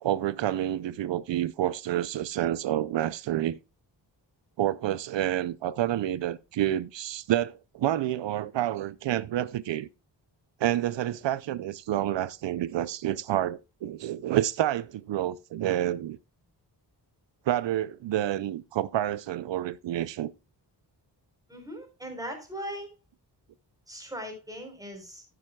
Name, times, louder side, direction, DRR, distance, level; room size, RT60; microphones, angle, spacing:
voice 1, 0.0-3.6 4.6-9.9 10.6-16.2 17.5-20.3, right 12 dB, 85° right, 0.5 m, -28 dB
voice 2, 21.5-22.9 23.9-25.2, equal, 10° right, 3.7 m, -39 dB
12.0 x 9.9 x 2.2 m
wide cardioid pair, 145°, 43 cm